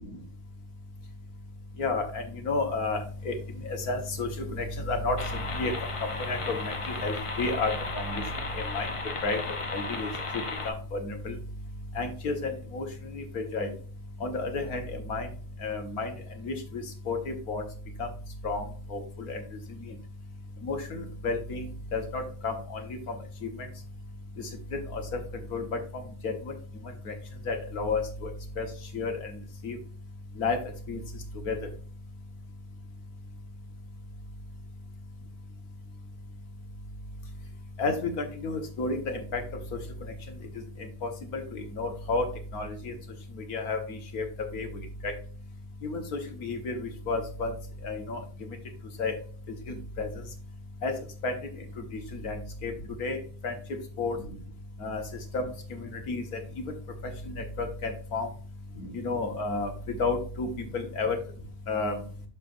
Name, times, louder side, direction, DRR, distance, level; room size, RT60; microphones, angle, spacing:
voice 1, 1.8-3.4 3.6-5.7 6.3-8.2 8.5-8.9 9.2-9.4 9.7-10.1 10.3-11.4 12.0-12.9 13.1-13.7 14.2-15.3 15.6-16.1 16.4-17.6 18.0-18.1 18.4-18.6 18.9-19.4 20.6-21.7 21.9-22.8 23.4-23.5 24.7-25.2 25.5-25.8 26.2-26.3 27.1-27.2 27.5-28.3 28.6-28.7 28.9-29.3 29.6-29.8 30.4-30.6 30.9-31.0 31.5-31.6 37.8-39.4 41.0-42.3 42.5-42.9 43.5-44.3 44.5-44.7 45.0-45.1 45.8-47.5 47.8-48.2 49.0-49.1 50.0-50.1 50.8-50.9 51.2-51.3 51.9-52.7 53.0-53.2 53.4-53.5 54.0-54.2 54.8-55.0 55.3-55.4 55.7-56.6 57.6-58.3 58.8-60.5 60.7-61.2 61.7-62.0, left 3 dB, 70° left, 5 dB, 1.8 m, -31 dB
sound 1, 5.2-10.7, left 3 dB, 35° left, 0.5 m, -35 dB
12.0 x 4.2 x 2.5 m, 0.40 s
omnidirectional pair, 1.6 m